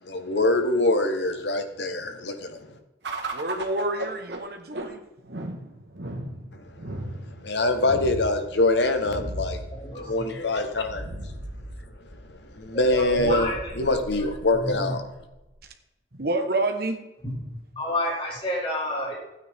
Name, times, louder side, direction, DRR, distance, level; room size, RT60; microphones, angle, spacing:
voice 1, 0.0-2.7 6.9-7.0 7.4-9.6 10.1-11.1 12.5-13.5 13.8-15.0, left 2 dB, 70° left, 6 dB, 1.3 m, -24 dB
sound 1, 3.0-15.7, right 1 dB, 75° right, 1.5 m, -37 dB
voice 2, 3.3-5.0 13.2-13.4 16.2-17.0, right 2 dB, 55° right, 5 dB, 1.3 m, -28 dB
voice 3, 9.7-10.5 12.7-14.3 14.6-15.0 17.2-19.1, left 1 dB, 30° left, -4 dB, 2.7 m, -31 dB
12.5 x 9.4 x 3.6 m, 0.97 s
head